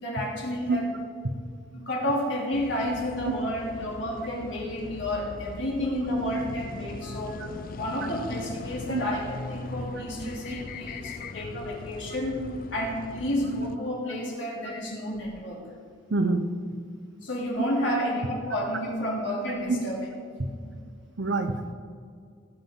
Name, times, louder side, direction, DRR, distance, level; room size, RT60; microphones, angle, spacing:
voice 1, 0.0-0.9 1.7-7.5 7.8-12.4 12.7-15.6 17.2-20.7, equal, 70° left, -3 dB, 3.0 m, -31 dB
sound 1, 2.5-13.8, left 3 dB, 45° left, 0.4 m, -40 dB
voice 2, 16.1-16.5 19.7-19.8 20.4-20.5 21.2-21.7, right 2 dB, 65° right, 8 dB, 0.8 m, -26 dB
17.5 x 7.3 x 3.9 m, 2.2 s
head